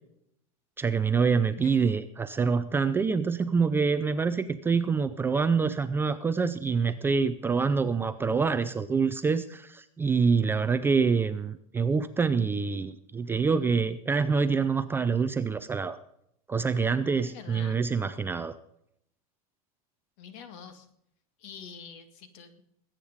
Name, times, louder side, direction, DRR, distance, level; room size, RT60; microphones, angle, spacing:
voice 1, 0.8-16.0 16.5-18.6, right 5 dB, 10° right, 11 dB, 0.5 m, -26 dB
voice 2, 1.4-1.8 17.1-17.8 20.2-20.9 21.4-22.6, left 6 dB, 50° left, 10 dB, 2.2 m, -46 dB
20.5 x 8.9 x 5.2 m, 0.75 s
supercardioid pair, 150°, 19 cm